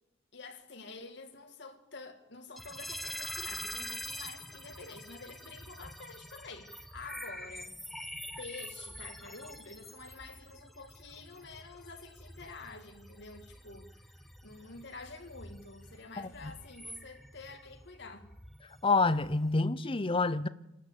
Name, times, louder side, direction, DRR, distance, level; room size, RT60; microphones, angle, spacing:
voice 1, 0.3-7.8 8.4-18.3, left 3 dB, 65° left, 2.0 m, -48 dB
sound 1, 2.6-19.6, equal, ahead, 1.0 m, -46 dB
voice 2, 18.8-20.5, left 3 dB, 30° left, 0.7 m, -27 dB
26.5 x 12.0 x 8.2 m
head